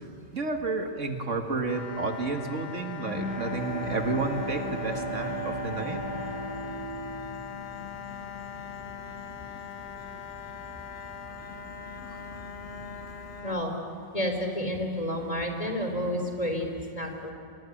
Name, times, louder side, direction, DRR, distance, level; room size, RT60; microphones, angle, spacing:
voice 1, 0.3-6.0, right 3 dB, 80° right, 4 dB, 2.2 m, -31 dB
sound 1, 1.7-13.5, left 7 dB, 55° left, 1.2 m, -41 dB
Bowed string instrument, 2.7-8.1, right 1 dB, 5° right, 3.6 m, -35 dB
Insect, 3.5-13.4, right 1 dB, 50° right, 4.1 m, -49 dB
voice 2, 11.9-12.8 13.4-13.8 14.1-17.3, equal, 30° left, 4 dB, 3.7 m, -31 dB
26.0 x 22.5 x 8.9 m, 2.6 s
omnidirectional pair, 1.3 m